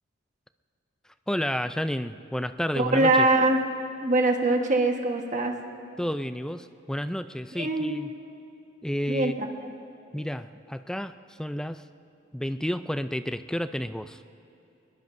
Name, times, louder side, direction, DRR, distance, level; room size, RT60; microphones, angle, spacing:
voice 1, 1.3-3.3 6.0-8.1 8.8-9.4 10.1-11.1 11.4-11.8 12.3-14.2, equal, 5° left, 11 dB, 0.3 m, -31 dB
voice 2, 2.8-3.6 4.0-5.5 7.5-7.9 9.1-9.5, right 2 dB, 40° right, 3 dB, 1.3 m, -23 dB
22.0 x 21.5 x 2.6 m, 2.9 s
head